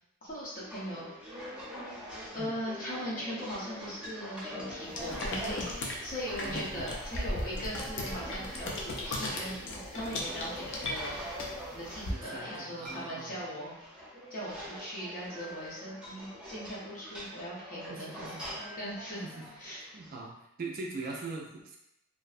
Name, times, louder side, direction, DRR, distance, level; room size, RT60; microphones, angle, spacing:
voice 1, 0.2-1.6 2.3-11.2 11.7-13.7 14.3-18.3 18.8-19.2 19.6-19.8, equal, 40° left, -7 dB, 0.8 m, -39 dB
sound 1, 0.5-20.2, equal, 5° right, 0.7 m, -44 dB
sound 2, 4.9-12.1, left 1 dB, 55° left, 0.4 m, -37 dB
voice 2, 6.4-6.9 10.2-10.4 12.1-13.4 17.9-18.4 19.2-19.3 19.6-20.3 20.6-21.8, right 3 dB, 40° right, 0 dB, 0.3 m, -41 dB
2.5 x 2.1 x 2.4 m, 0.84 s
head